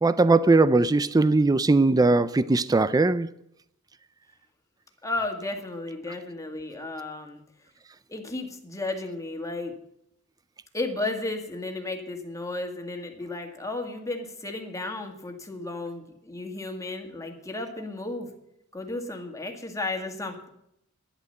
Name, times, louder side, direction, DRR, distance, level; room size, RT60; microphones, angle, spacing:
voice 1, 0.0-3.3, right 3 dB, 15° right, 0.4 m, -20 dB
voice 2, 5.0-7.4 8.1-9.7 10.7-18.3 18.7-20.5, left 2 dB, 15° left, 1.9 m, -33 dB
11.5 x 10.5 x 6.7 m
head